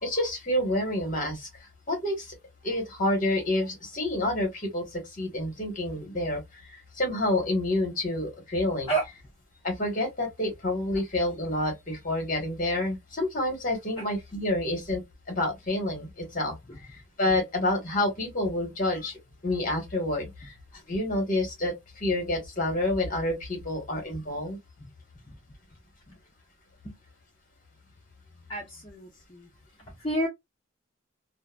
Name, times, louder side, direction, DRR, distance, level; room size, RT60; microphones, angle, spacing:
voice 1, 0.0-1.5 1.9-2.3 2.6-6.4 6.7-8.9 9.6-16.5 17.2-20.5 20.9-24.6, left 1 dB, 45° left, 1.4 m, -28 dB
voice 2, 28.5-29.5 29.9-30.3, right 2 dB, 25° left, 0.7 m, -31 dB
2.7 x 2.5 x 2.3 m
head